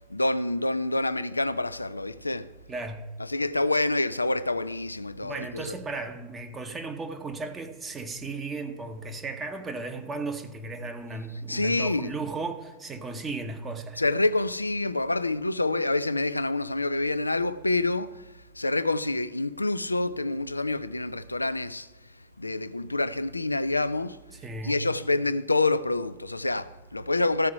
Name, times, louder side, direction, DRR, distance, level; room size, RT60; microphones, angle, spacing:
voice 1, 0.1-2.5 3.3-5.6 11.5-12.1 14.0-18.1 18.6-21.9 22.4-24.2 24.6-27.5, left 2 dB, 85° left, 0.3 m, -27 dB
voice 2, 2.7-3.1 5.2-14.0 24.3-24.8, right 3 dB, 20° right, 0.9 m, -35 dB
13.5 x 4.7 x 5.4 m
figure-of-eight pair, 90°, 0 cm